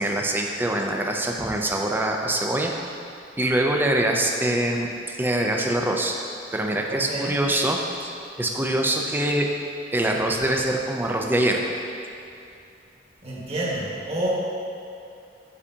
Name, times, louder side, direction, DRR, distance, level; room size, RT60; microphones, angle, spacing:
voice 1, 0.0-2.9 3.4-6.2 6.5-9.5 9.9-11.6, right 1 dB, 10° right, 1 dB, 0.5 m, -24 dB
voice 2, 6.9-7.4 13.2-14.3, right 1 dB, 35° right, -7 dB, 1.5 m, -29 dB
9.8 x 4.8 x 2.8 m, 2.6 s
head